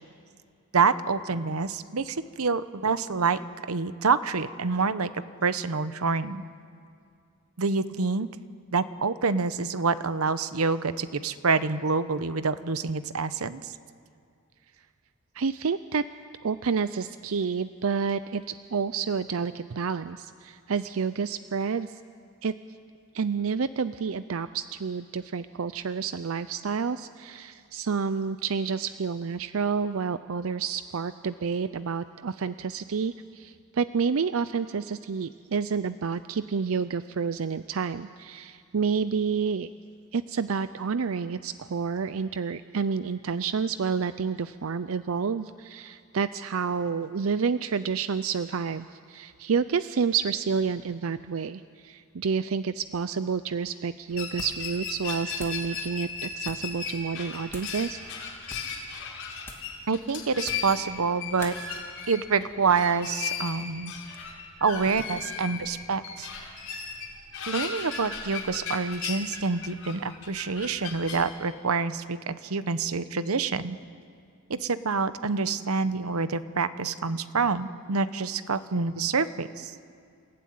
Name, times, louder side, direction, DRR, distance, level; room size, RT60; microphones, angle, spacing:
voice 1, 0.7-3.4 3.7-6.4 7.6-8.3 8.7-13.6 59.9-61.5 62.1-63.9 64.6-66.3 67.5-73.8 74.5-79.7, right 4 dB, 90° right, 13 dB, 0.9 m, -27 dB
voice 2, 15.3-16.1 16.4-22.0 22.4-22.5 23.1-39.7 40.1-58.0, right 5 dB, 70° right, 13 dB, 0.5 m, -29 dB
sound 1, 54.1-71.2, left 6 dB, 80° left, 5.6 m, -36 dB
sound 2, 54.3-54.7 55.0-55.7 56.4-56.7 57.5-57.8 58.4-58.8 59.4-59.8 60.4-60.8 61.4-61.6, left 1 dB, 10° left, 2.7 m, -44 dB
29.0 x 16.0 x 9.5 m, 2.3 s
head